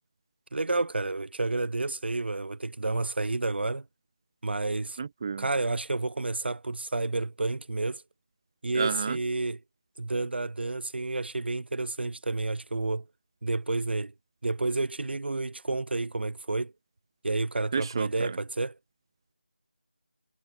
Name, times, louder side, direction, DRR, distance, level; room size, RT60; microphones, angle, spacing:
voice 1, 0.5-3.9 4.4-5.0 5.4-8.0 8.6-9.6 10.0-13.0 13.4-14.1 14.4-16.7 17.2-18.7, right 2 dB, 70° right, 0.5 m, -30 dB
voice 2, 5.0-5.5 8.7-9.2 17.7-18.4, right 5 dB, 25° right, 0.6 m, -31 dB
figure-of-eight pair, 165°, 6 cm